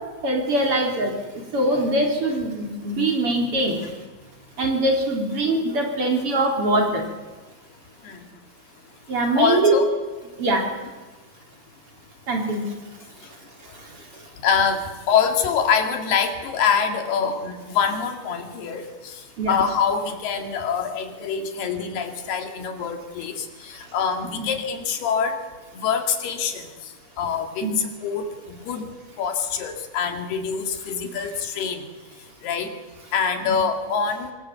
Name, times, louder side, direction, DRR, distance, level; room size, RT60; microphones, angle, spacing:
voice 1, 0.2-1.1 1.5-3.8 4.6-7.0 9.1-9.8 10.4-10.7 12.3-12.7 19.4-19.6 24.4-24.5 27.6-27.8, right 2 dB, 35° right, 2 dB, 4.1 m, -22 dB
voice 2, 9.4-9.9 14.4-25.4 25.7-26.9 27.2-28.9 29.2-31.9 32.4-32.7 33.1-34.3, left 6 dB, 90° left, 5 dB, 4.2 m, -25 dB
25.5 x 20.0 x 8.2 m, 1.3 s
omnidirectional pair, 4.4 m